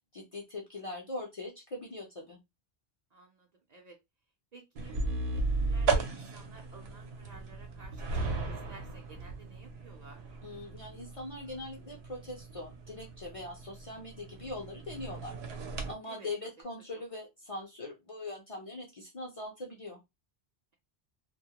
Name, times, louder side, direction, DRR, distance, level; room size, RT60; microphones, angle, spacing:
voice 1, 0.1-2.4 10.4-15.6 15.9-20.0, left 2 dB, 45° left, -1 dB, 0.5 m, -42 dB
voice 2, 3.1-4.0 4.5-10.2 16.1-16.3, right 4 dB, 50° right, 1 dB, 0.5 m, -53 dB
sound 1, 4.8-15.9, right 3 dB, 80° right, 0.8 m, -36 dB
2.2 x 2.0 x 2.8 m, 0.21 s
omnidirectional pair, 1.1 m